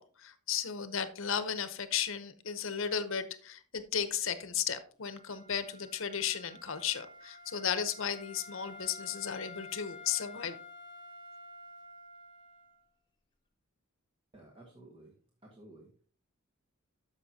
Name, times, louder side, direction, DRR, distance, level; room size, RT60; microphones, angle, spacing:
voice 1, 0.0-10.6, left 8 dB, 60° left, 12 dB, 0.8 m, -35 dB
Wind instrument woodwind instrument, 5.0-12.8, left 3 dB, 20° left, 1.0 m, -50 dB
voice 2, 14.3-15.9, right 1 dB, 25° right, -2 dB, 1.1 m, -55 dB
13.5 x 5.6 x 2.8 m, 0.42 s
head